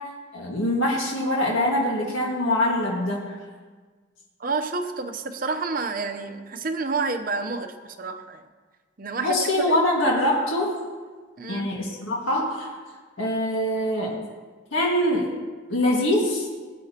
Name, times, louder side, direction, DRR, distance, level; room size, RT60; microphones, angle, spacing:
voice 1, 0.3-3.4 9.2-10.7 11.5-12.7 13.2-14.2 14.7-15.3 15.7-16.5, left 1 dB, 90° left, -3 dB, 1.8 m, -23 dB
voice 2, 4.4-8.4 9.0-9.5 11.4-11.7, right 4 dB, 45° right, 7 dB, 0.7 m, -29 dB
18.0 x 9.0 x 2.9 m, 1.4 s
head